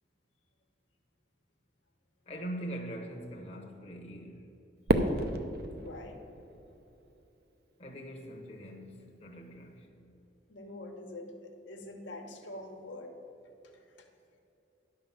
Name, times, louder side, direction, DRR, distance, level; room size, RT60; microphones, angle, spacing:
voice 1, 2.3-4.5 7.8-10.1, right 1 dB, 35° left, 1.0 m, -42 dB
Fireworks, 4.9-7.2, right 1 dB, 55° right, 0.6 m, -31 dB
voice 2, 5.7-6.2 10.5-13.1 14.0-14.1, left 2 dB, 80° left, 1.3 m, -45 dB
11.0 x 5.8 x 7.1 m
head